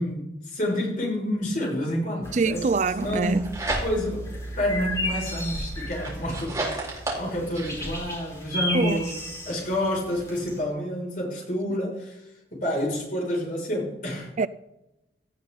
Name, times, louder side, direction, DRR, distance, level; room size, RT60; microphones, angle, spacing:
voice 1, 0.0-2.7 3.0-3.5 3.8-4.3 4.6-9.1 9.4-12.2 12.5-14.3, left 1 dB, 45° left, 6.2 m, -29 dB
sound 1, 2.2-10.6, equal, 15° left, 5.2 m, -35 dB
voice 2, 2.3-3.5 8.7-9.0 14.4-14.5, right 4 dB, 40° right, 0.4 m, -24 dB
sound 2, 3.1-4.3 4.7-7.9, right 2 dB, 15° right, 4.2 m, -33 dB
17.5 x 13.5 x 4.0 m
head